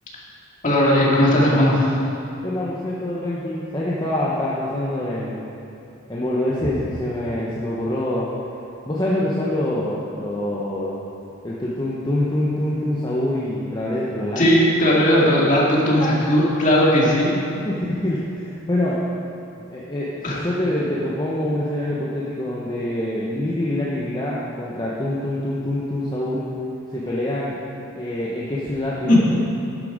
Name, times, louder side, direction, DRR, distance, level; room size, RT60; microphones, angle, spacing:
voice 1, 0.6-1.9 14.4-17.4 20.2-20.4 29.1-29.2, equal, 40° left, -5 dB, 2.1 m, -17 dB
voice 2, 2.4-5.5 6.1-8.3 8.9-11.0 11.4-14.4 16.0-16.1 17.6-19.0 19.7-26.5 26.9-27.6 27.9-29.4, left 1 dB, 20° left, -6 dB, 0.9 m, -25 dB
11.5 x 7.5 x 5.0 m, 2.7 s
head